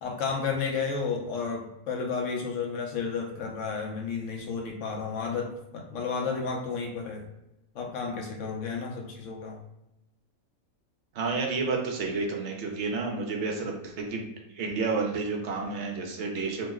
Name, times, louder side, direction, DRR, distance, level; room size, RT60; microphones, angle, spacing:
voice 1, 0.0-7.2 7.7-9.6, left 5 dB, 65° left, 1 dB, 0.9 m, -32 dB
voice 2, 11.1-14.3 14.5-16.7, right 4 dB, 60° right, 1 dB, 0.8 m, -30 dB
2.9 x 2.1 x 3.4 m, 0.90 s
omnidirectional pair, 1.5 m